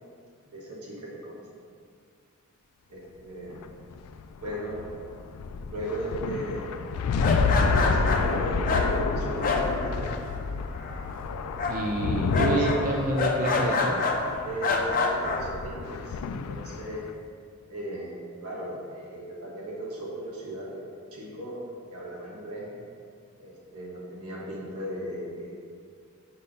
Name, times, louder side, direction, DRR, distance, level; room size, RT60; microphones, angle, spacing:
voice 1, 0.5-1.4 2.9-3.6 4.4-5.0 5.7-6.7 7.5-10.1 10.5-11.5 12.2-12.9 14.4-17.1 17.7-20.8 21.1-21.6 21.9-22.7 23.4-25.6, right 1 dB, 85° right, -4 dB, 1.5 m, -37 dB
sound 1, 3.5-17.1, left 4 dB, 85° left, 0.3 m, -29 dB
sound 2, 7.1-10.4 10.7-11.2 11.6-14.2 14.6-15.4, left 3 dB, 40° left, 0.6 m, -27 dB
voice 2, 11.7-14.0, right 2 dB, 35° right, -1 dB, 0.5 m, -28 dB
5.3 x 4.2 x 5.1 m, 2.2 s
head